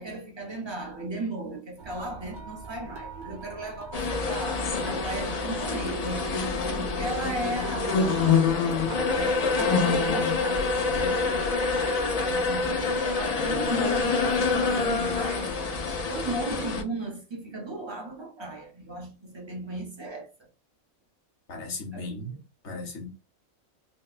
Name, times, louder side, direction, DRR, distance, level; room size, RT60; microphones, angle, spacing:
voice 1, 0.0-6.4 6.8-8.6 8.9-15.6 16.1-20.3 21.9-22.2, right 2 dB, 25° right, 0.8 m, -36 dB
sound 1, 1.8-6.9, right 4 dB, 80° right, 0.4 m, -45 dB
sound 2, 3.9-16.8, left 4 dB, 85° left, 0.3 m, -26 dB
voice 2, 21.5-22.3 22.6-23.1, left 2 dB, 60° left, 1.2 m, -36 dB
3.8 x 2.1 x 2.4 m
omnidirectional pair, 1.4 m